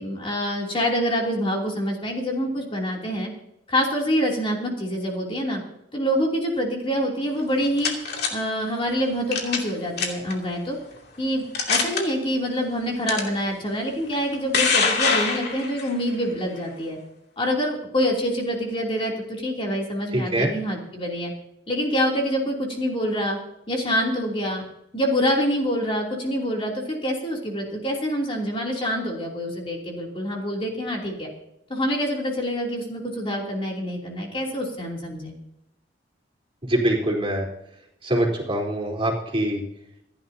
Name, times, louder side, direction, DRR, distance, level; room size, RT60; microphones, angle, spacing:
voice 1, 0.0-3.3 3.7-5.6 5.9-8.0 8.3-10.8 11.2-17.0 17.4-21.3 21.7-23.4 23.7-24.6 24.9-31.3 31.7-35.3, equal, 30° left, -1 dB, 3.0 m, -26 dB
sound 1, 7.4-8.3 9.3-9.7 10.0-10.3 11.0-11.1 11.5-12.0 13.1-13.2 14.1-15.9, left 5 dB, 60° left, 2.7 m, -23 dB
voice 2, 20.1-20.5 36.6-37.5 38.0-39.6, right 1 dB, 30° right, -3 dB, 3.7 m, -23 dB
27.0 x 11.0 x 2.8 m, 0.81 s
head